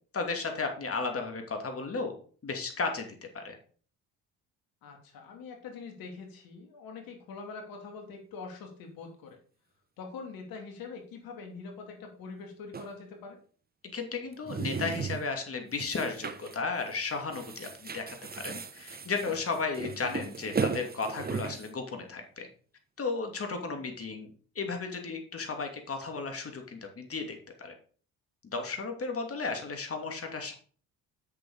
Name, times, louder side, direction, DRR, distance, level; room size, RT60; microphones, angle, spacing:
voice 1, 0.1-2.1 2.4-3.6 13.9-22.5 23.0-27.7 28.5-30.5, left 4 dB, 35° left, 4 dB, 2.8 m, -34 dB
voice 2, 4.8-9.4 10.0-13.4 23.5-23.8, left 4 dB, 65° left, 2 dB, 3.0 m, -44 dB
sound 1, 12.7-12.9 14.3-15.3 15.8-16.6 16.9-17.0 17.3-21.7, right 5 dB, 25° right, 1.0 m, -36 dB
7.7 x 6.8 x 5.1 m, 0.43 s
hypercardioid pair, 60°, 37 cm